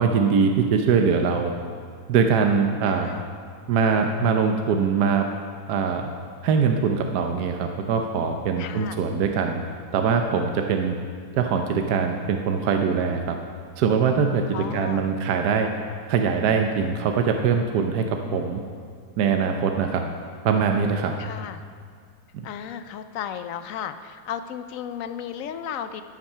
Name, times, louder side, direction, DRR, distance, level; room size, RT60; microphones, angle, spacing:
voice 1, 0.0-1.5 2.1-3.1 3.7-5.3 5.7-6.1 6.4-9.6 9.9-10.9 11.3-13.4 13.8-15.7 16.1-18.0 18.3-18.6 19.2-20.0 20.4-21.1 22.3-22.5, right 6 dB, 75° right, 4 dB, 1.2 m, -22 dB
voice 2, 2.9-3.3 8.6-9.0 14.5-15.1 21.2-21.6 22.4-26.0, left 9 dB, 65° left, 10 dB, 0.9 m, -34 dB
13.0 x 8.8 x 5.5 m, 2.1 s
omnidirectional pair, 1.8 m